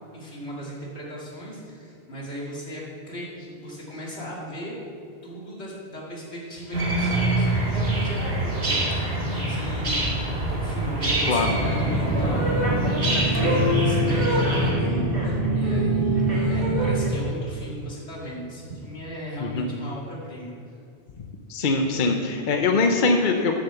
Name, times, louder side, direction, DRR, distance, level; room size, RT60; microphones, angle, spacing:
voice 1, 0.1-4.8 5.2-20.8, equal, 80° left, -5 dB, 2.8 m, -37 dB
sound 1, 6.7-14.7, right 2 dB, 60° right, 2.1 m, -26 dB
voice 2, 11.3-11.6 19.4-19.7 21.5-23.6, left 3 dB, 50° left, 4 dB, 0.8 m, -22 dB
sound 2, 11.4-17.1, right 2 dB, 80° right, 2.5 m, -24 dB
sound 3, 13.3-16.1, left 7 dB, 20° right, 1.1 m, -30 dB
7.5 x 7.4 x 6.9 m, 2.5 s
omnidirectional pair, 1.1 m